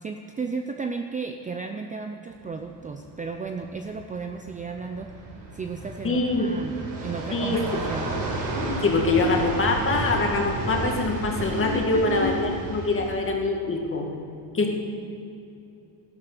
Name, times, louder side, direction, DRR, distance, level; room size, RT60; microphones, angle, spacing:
voice 1, 0.0-5.2 5.5-8.1 11.7-12.0, right 4 dB, 20° right, 5 dB, 0.5 m, -34 dB
sound 1, 2.3-13.2, right 1 dB, 60° right, 4.4 m, -32 dB
voice 2, 6.0-6.5 7.3-7.6 8.8-14.1 14.5-14.7, left 3 dB, 30° left, 1 dB, 2.1 m, -24 dB
15.5 x 12.0 x 6.7 m, 2.8 s
cardioid pair, 155°, 43 cm